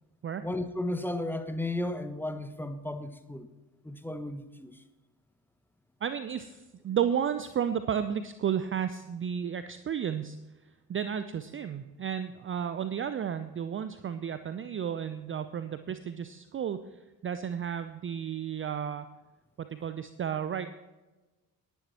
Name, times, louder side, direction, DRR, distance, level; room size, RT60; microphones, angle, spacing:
voice 1, 0.4-3.5 3.8-4.7, left 1 dB, 5° left, 1.2 m, -34 dB
voice 2, 6.0-10.4 10.9-16.8 17.2-19.1 19.6-20.7, right 8 dB, 25° right, 0.6 m, -32 dB
19.0 x 10.5 x 3.0 m
figure-of-eight pair, 50°, 49 cm